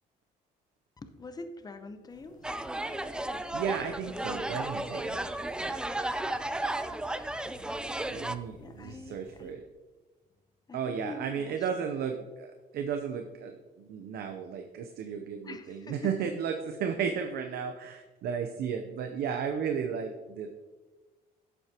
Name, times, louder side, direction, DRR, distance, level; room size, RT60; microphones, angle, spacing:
voice 1, 1.0-2.6 6.7-6.8 8.6-9.6 10.7-11.7 15.4-16.3 19.5-19.6, left 3 dB, 25° left, 8 dB, 0.8 m, -44 dB
sound 1, 2.1-9.5, equal, 50° left, 1.7 m, -56 dB
sound 2, 2.4-8.3, right 1 dB, 5° right, 0.4 m, -34 dB
voice 2, 3.3-5.4 8.1-9.7 10.7-20.5, right 7 dB, 70° right, 6 dB, 0.7 m, -34 dB
10.5 x 8.0 x 3.0 m, 1.2 s
cardioid pair, 110°, 17 cm